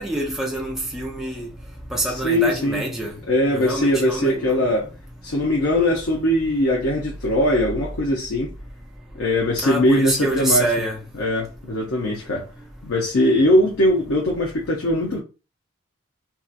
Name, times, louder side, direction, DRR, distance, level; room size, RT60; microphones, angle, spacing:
voice 1, 0.0-1.5 1.9-3.2 3.5-4.6 9.6-11.0, right 1 dB, ahead, 0.4 m, -26 dB
voice 2, 2.1-2.8 3.3-4.9 5.2-8.5 9.1-10.7 11.2-12.5 12.8-15.2, left 1 dB, 70° left, 0.6 m, -21 dB
2.7 x 2.3 x 2.4 m
head